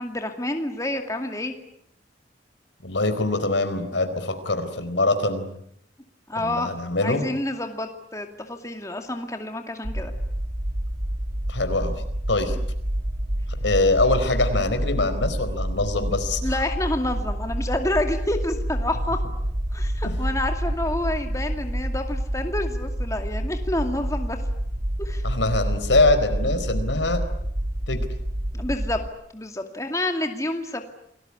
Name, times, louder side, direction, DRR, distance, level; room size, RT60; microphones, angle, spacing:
voice 1, 0.0-1.5 6.3-6.7 7.0-10.1 16.4-19.2 19.7-24.5 25.0-25.3 28.5-29.0 29.3-30.9, left 1 dB, 15° left, 5 dB, 2.3 m, -28 dB
voice 2, 2.8-5.4 6.4-7.2 11.5-11.9 12.3-12.6 13.6-16.4 25.2-27.2 27.9-28.0, left 2 dB, 85° left, 9 dB, 4.4 m, -23 dB
sound 1, 9.8-29.1, right 1 dB, 55° right, 2.8 m, -28 dB
28.5 x 20.0 x 9.8 m, 0.75 s
head